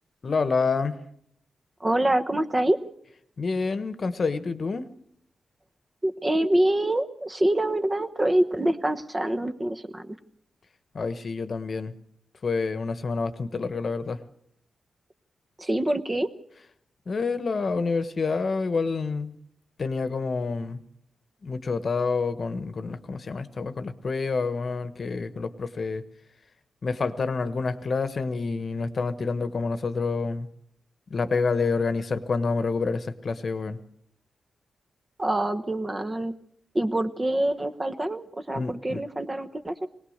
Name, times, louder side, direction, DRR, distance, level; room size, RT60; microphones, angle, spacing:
voice 1, 0.2-1.0 3.4-4.9 10.9-11.9 12.4-14.2 17.1-19.3 19.8-20.8 21.4-26.0 26.8-30.5 31.1-33.8 38.5-39.0, left 4 dB, 45° left, 12 dB, 1.2 m, -28 dB
voice 2, 1.8-2.8 6.0-10.2 15.6-16.3 35.2-36.3 36.7-39.9, right 1 dB, 20° right, 8 dB, 1.1 m, -25 dB
21.0 x 18.5 x 6.6 m, 0.68 s
wide cardioid pair, 125°, 0 cm